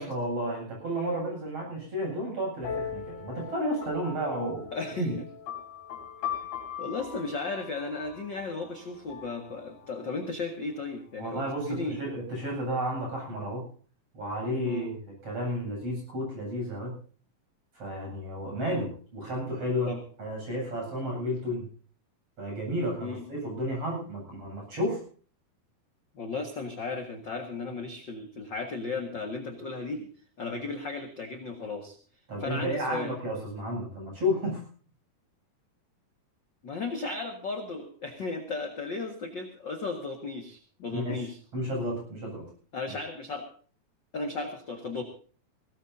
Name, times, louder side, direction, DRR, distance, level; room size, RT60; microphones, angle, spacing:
voice 1, 0.0-4.7 5.0-5.1 11.2-13.7 14.1-17.0 17.8-19.9 20.2-21.7 22.4-25.0 32.3-34.7 40.9-42.5, equal, 40° right, -1 dB, 9.2 m, -32 dB
sound 1, 2.6-10.2, left 8 dB, 85° left, 5.3 m, -40 dB
voice 2, 4.7-5.1 6.2-6.3 6.8-12.1 14.7-14.9 19.9-20.0 23.0-23.2 26.1-30.1 30.4-32.0 32.4-33.1 36.6-41.4 42.7-43.5 44.1-45.0, left 3 dB, 40° left, 3 dB, 1.8 m, -35 dB
21.0 x 17.5 x 2.8 m, 0.42 s
omnidirectional pair, 4.3 m